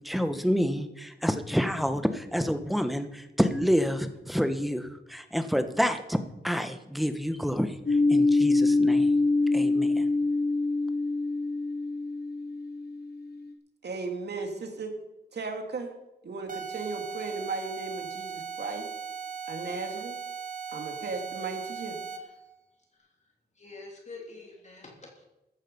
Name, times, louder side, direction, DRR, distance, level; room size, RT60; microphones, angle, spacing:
voice 1, 0.0-6.2 6.4-7.8 8.1-9.1 9.5-9.9, equal, ahead, 8 dB, 1.4 m, -28 dB
sound 1, 7.9-13.4, left 3 dB, 65° left, 2.5 m, -25 dB
voice 2, 13.8-14.9 15.3-15.9 16.2-18.9 19.5-20.2 20.7-22.0, right 3 dB, 70° right, 4 dB, 2.7 m, -36 dB
sound 2, 16.5-22.4, right 6 dB, 50° right, 2.0 m, -38 dB
voice 3, 23.6-25.2, left 3 dB, 40° left, -1 dB, 3.5 m, -46 dB
14.5 x 11.5 x 5.5 m, 0.96 s
wide cardioid pair, 80°, 18 cm